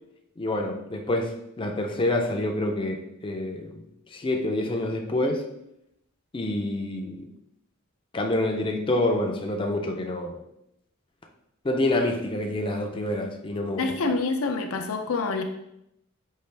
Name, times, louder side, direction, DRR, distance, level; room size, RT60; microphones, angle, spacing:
voice 1, 0.4-3.7 4.1-5.5 6.3-7.3 8.1-10.4 11.6-14.0, left 1 dB, 25° left, 3 dB, 0.4 m, -27 dB
voice 2, 13.8-15.4, left 3 dB, 80° left, 5 dB, 0.5 m, -27 dB
5.6 x 2.9 x 3.2 m, 0.80 s
head